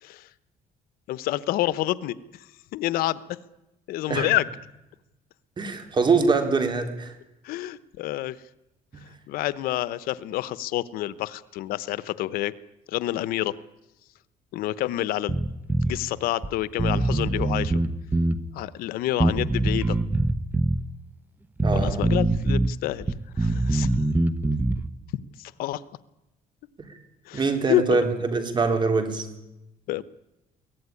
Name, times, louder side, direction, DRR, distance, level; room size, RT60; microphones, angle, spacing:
voice 1, 1.1-3.2 3.9-4.5 7.4-8.4 9.0-12.5 12.9-13.5 14.5-15.4 15.8-17.8 18.5-20.0 21.7-23.1 23.4-24.0 25.4-25.8 27.2-28.0 29.9-30.0, left 15 dB, 85° left, 17 dB, 1.0 m, -28 dB
voice 2, 5.6-7.1 8.9-9.0 21.6-22.0 26.8-27.0 27.3-29.3, right 4 dB, 30° right, 6 dB, 4.0 m, -24 dB
Bass guitar, 15.3-16.0 16.4-16.5 16.8-18.4 19.2-20.8 21.6-22.7 23.0-24.9, right 2 dB, 10° right, 1.1 m, -23 dB
23.0 x 17.5 x 9.8 m, 0.93 s
cardioid pair, 125°, 15 cm